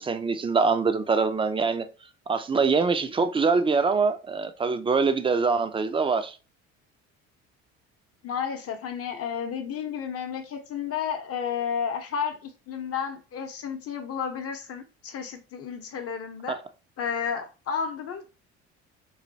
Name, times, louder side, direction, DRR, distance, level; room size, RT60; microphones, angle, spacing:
voice 1, 0.0-1.9 2.3-6.4, right 4 dB, 15° right, 0.4 m, -24 dB
voice 2, 8.2-16.6 17.0-18.3, left 7 dB, 45° left, 0.8 m, -32 dB
3.2 x 2.2 x 2.6 m
supercardioid pair, 75°, 32 cm